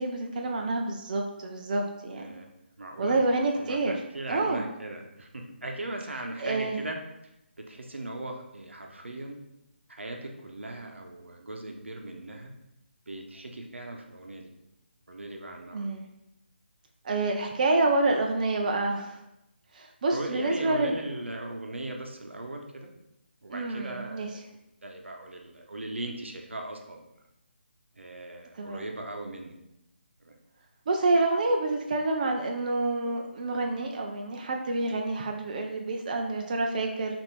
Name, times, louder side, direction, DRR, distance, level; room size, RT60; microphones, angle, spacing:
voice 1, 0.0-2.2 3.0-3.9 4.3-4.6 6.4-6.8 15.7-16.1 17.0-19.2 19.7-21.0 23.5-24.3 28.6-28.8 30.9-37.2, right 2 dB, 45° right, 2 dB, 0.4 m, -28 dB
voice 2, 2.1-2.5 2.8-3.2 3.5-7.0 7.6-9.4 9.9-12.5 13.1-14.5 15.1-15.9 20.1-22.9 23.4-24.4 24.8-27.0 28.0-29.6 30.2-30.4, right 2 dB, 90° right, 2 dB, 0.8 m, -38 dB
5.7 x 2.6 x 3.2 m, 0.87 s
figure-of-eight pair, 155°, 6 cm